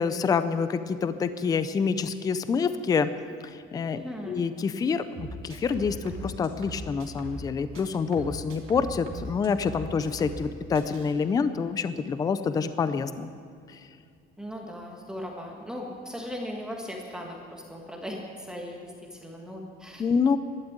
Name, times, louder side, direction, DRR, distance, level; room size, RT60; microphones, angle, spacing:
voice 1, 0.0-3.1 3.4-13.3 13.7-13.8 20.0-20.4, left 5 dB, 20° left, 12 dB, 0.5 m, -27 dB
voice 2, 3.9-4.4 14.4-20.0, equal, 5° right, -1 dB, 1.5 m, -38 dB
sound 1, 5.1-7.5 7.7-10.5 10.7-11.1, right 2 dB, 80° right, 3.0 m, -40 dB
12.5 x 12.0 x 8.7 m, 2.3 s
cardioid pair, 180°, 20 cm